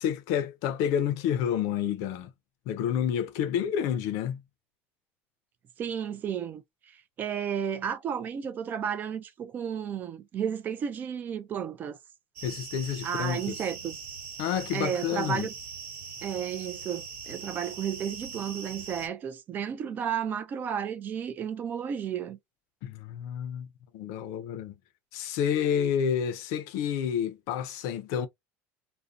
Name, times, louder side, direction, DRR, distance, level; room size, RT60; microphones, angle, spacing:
voice 1, 0.0-2.3 2.7-4.4 12.4-13.6 14.4-15.5 22.8-23.7 23.9-24.8 25.1-28.3, left 9 dB, 65° left, 0.5 m, -29 dB
voice 2, 5.8-6.6 7.2-12.0 13.0-14.1 14.7-15.5 16.2-22.4, right 8 dB, 30° right, 0.3 m, -32 dB
sound 1, 12.4-19.1, right 5 dB, 80° right, 1.0 m, -41 dB
2.6 x 2.1 x 2.3 m
cardioid pair, 150°, 6 cm